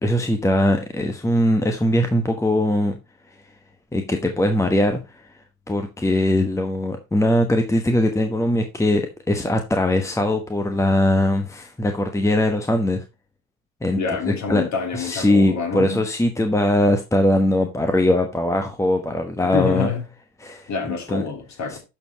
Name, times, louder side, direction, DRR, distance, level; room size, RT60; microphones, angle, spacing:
voice 1, 0.0-3.0 3.9-5.2 5.7-13.0 13.8-14.6 14.9-19.9 20.4-20.7 21.1-21.2 21.7-21.8, left 1 dB, 5° left, 1.2 m, -21 dB
voice 2, 13.9-16.0 19.5-20.0 20.7-21.8, left 5 dB, 40° left, 3.0 m, -26 dB
12.5 x 4.5 x 4.1 m
hypercardioid pair, 75°, 42 cm